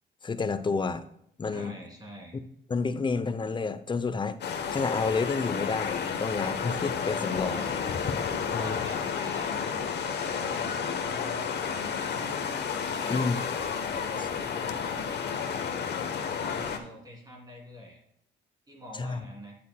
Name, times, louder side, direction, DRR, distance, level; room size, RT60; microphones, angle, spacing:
voice 1, 0.2-1.0 1.4-1.8 2.7-7.6 8.5-8.8 13.1-13.4 19.0-19.2, left 4 dB, 25° left, 12 dB, 0.6 m, -30 dB
voice 2, 1.5-2.3 7.5-8.1 8.6-12.4 12.9-15.9 16.3-18.0 18.7-19.6, equal, 20° right, -1 dB, 2.9 m, -46 dB
sound 1, 4.4-16.8, left 6 dB, 55° left, 1.0 m, -31 dB
9.6 x 8.3 x 2.2 m, 0.72 s
cardioid pair, 90°, 20 cm